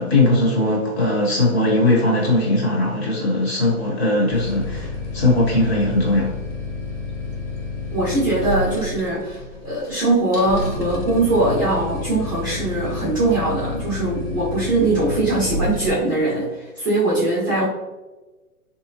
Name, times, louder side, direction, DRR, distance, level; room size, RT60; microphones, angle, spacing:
voice 1, 0.0-6.3, left 2 dB, 45° left, -2 dB, 1.1 m, -19 dB
sound 1, 4.3-15.9, left 2 dB, 75° left, 1.0 m, -30 dB
voice 2, 7.9-17.7, right 2 dB, 15° right, -8 dB, 0.5 m, -21 dB
3.4 x 2.8 x 2.8 m, 1.2 s
hypercardioid pair, 165°, 45 cm